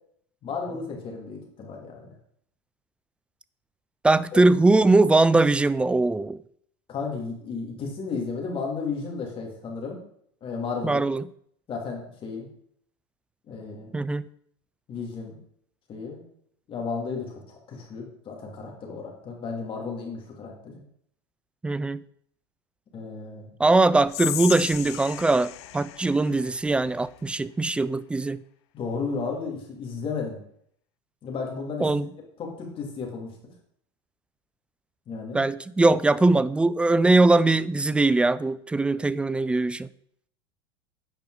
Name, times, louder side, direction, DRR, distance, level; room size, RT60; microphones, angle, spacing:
voice 1, 0.4-2.1 4.3-4.4 6.9-10.0 10.4-11.0 11.7-12.5 13.5-13.9 14.9-15.4 15.9-16.2 16.7-20.8 22.9-23.5 28.7-30.4 31.2-32.1 32.4-33.5 35.1-35.4, left 4 dB, 35° left, 2.8 m, -33 dB
voice 2, 4.0-6.4 10.8-11.3 13.9-14.3 21.6-22.0 23.6-28.4 31.8-32.1 35.3-39.9, right 2 dB, 5° right, 0.3 m, -21 dB
Whispering, 24.1-27.3, left 16 dB, 70° left, 0.5 m, -35 dB
8.6 x 5.2 x 4.9 m
hypercardioid pair, 95°, 15 cm